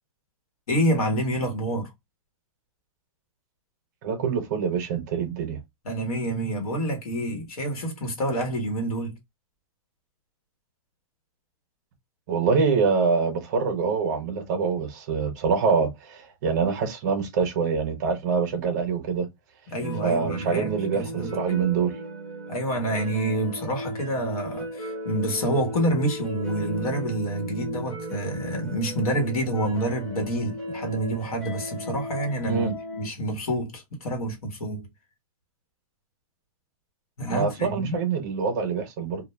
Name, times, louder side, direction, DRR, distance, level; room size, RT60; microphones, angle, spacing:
voice 1, 0.7-1.9 5.8-9.2 19.7-21.3 22.5-34.9 37.2-38.0, right 1 dB, 80° left, 1.1 m, -28 dB
voice 2, 4.0-5.6 12.3-19.3 20.0-21.9 32.5-32.8 37.3-39.2, right 5 dB, 30° right, 0.4 m, -25 dB
sound 1, 19.8-33.1, right 1 dB, 5° left, 0.7 m, -36 dB
2.1 x 2.1 x 3.0 m
hypercardioid pair, 165°, 18 cm